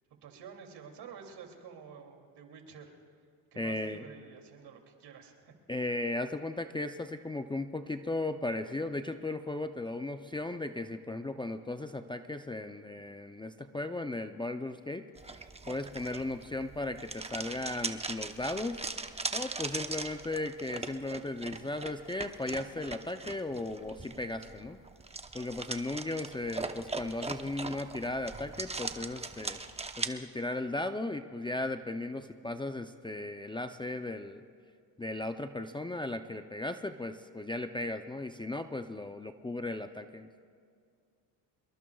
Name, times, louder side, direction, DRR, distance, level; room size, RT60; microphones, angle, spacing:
voice 1, 0.2-2.9 3.5-5.5 15.6-15.9, right 6 dB, 65° right, 3 dB, 2.8 m, -50 dB
voice 2, 3.6-4.0 5.7-15.0 15.7-18.8 19.3-24.8 25.3-29.6 30.0-34.4 35.0-40.4, left 2 dB, 10° left, 7 dB, 0.5 m, -36 dB
sound 1, 15.2-30.1, right 3 dB, 15° right, 0.9 m, -40 dB
26.5 x 22.0 x 2.4 m, 2.2 s
supercardioid pair, 80°, 44 cm